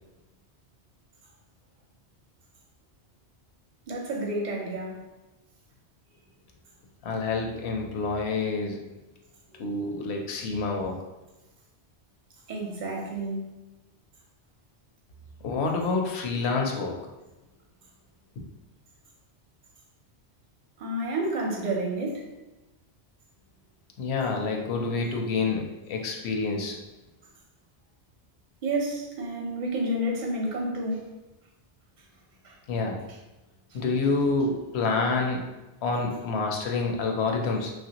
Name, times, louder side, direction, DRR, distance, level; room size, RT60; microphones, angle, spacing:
voice 1, 3.9-5.0 9.5-9.8 12.5-13.5 20.8-22.3 28.6-31.1 32.4-32.6, right 1 dB, 50° right, -1 dB, 0.7 m, -30 dB
voice 2, 7.0-8.8 9.6-10.9 15.4-17.0 18.4-18.5 24.0-26.7 32.7-33.0 33.7-35.5 35.8-37.7, left 3 dB, 75° left, 2 dB, 0.8 m, -28 dB
3.1 x 2.4 x 2.8 m, 1.0 s
omnidirectional pair, 1.1 m